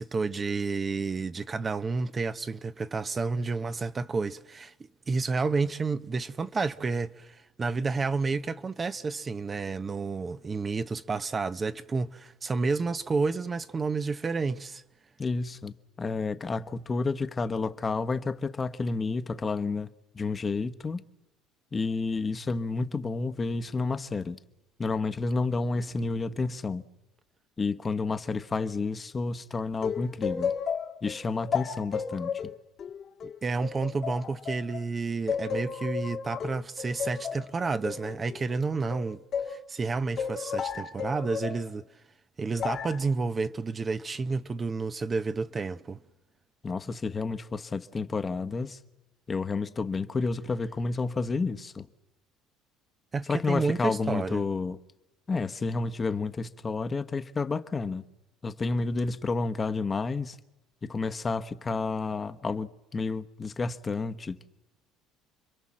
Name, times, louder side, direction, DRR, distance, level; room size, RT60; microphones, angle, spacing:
voice 1, 0.0-4.7 5.1-14.8 33.2-39.2 39.5-41.8 42.4-46.0 53.1-54.4, right 4 dB, 25° right, 0.9 m, -30 dB
voice 2, 15.2-21.0 21.7-24.4 24.8-26.8 27.6-30.5 31.0-32.5 46.6-48.8 49.3-51.9 53.3-54.8 55.3-58.0 58.4-60.4 60.8-64.4, left 4 dB, 25° left, 1.2 m, -30 dB
sound 1, 29.8-34.8 35.3-39.6 40.2-41.6 42.6-43.1, left 7 dB, 45° left, 1.6 m, -33 dB
29.5 x 22.0 x 7.5 m
supercardioid pair, 100°, 0 cm